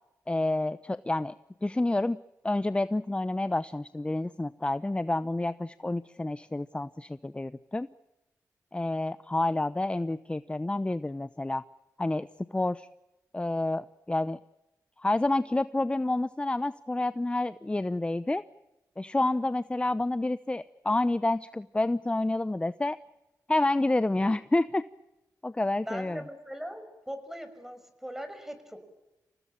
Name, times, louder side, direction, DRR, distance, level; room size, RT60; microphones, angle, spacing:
voice 1, 0.3-1.3 1.6-2.2 2.4-7.9 8.7-11.6 12.0-12.9 13.3-14.4 15.0-18.4 19.0-23.0 23.5-24.8 25.4-26.2, left 2 dB, 15° left, 15 dB, 0.8 m, -29 dB
voice 2, 25.8-28.8, equal, 5° right, 9 dB, 6.0 m, -40 dB
28.0 x 17.5 x 8.9 m, 0.99 s
cardioid pair, 65°, 7 cm